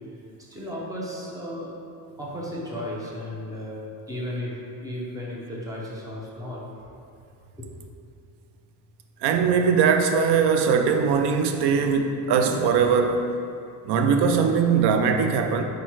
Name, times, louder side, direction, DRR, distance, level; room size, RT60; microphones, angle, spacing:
voice 1, 0.5-1.7 2.2-6.9 7.6-7.9, left 1 dB, 10° right, -5 dB, 0.8 m, -34 dB
voice 2, 9.2-13.2 13.8-15.6, right 6 dB, 65° right, 5 dB, 0.6 m, -21 dB
4.7 x 4.4 x 4.5 m, 2.5 s
cardioid pair, 160°, 44 cm